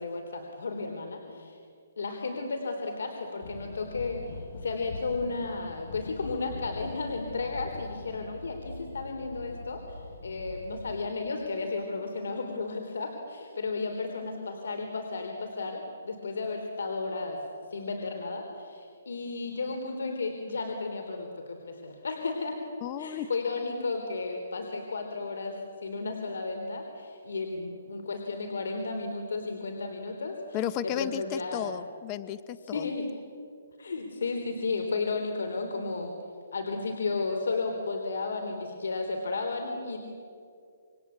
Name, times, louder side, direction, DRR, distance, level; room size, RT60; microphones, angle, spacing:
voice 1, 0.0-1.6 2.0-17.4 17.7-22.6 23.0-25.6 25.8-30.6 30.8-31.7 32.7-33.1 33.8-36.1 36.5-40.0, left 3 dB, 85° left, 4 dB, 3.7 m, -33 dB
sound 1, 3.4-11.1, left 3 dB, 65° left, 3.3 m, -43 dB
voice 2, 22.8-23.3 30.5-32.9, left 10 dB, 25° left, 14 dB, 0.8 m, -34 dB
27.5 x 22.5 x 8.5 m, 2.4 s
hypercardioid pair, 165°, 0 cm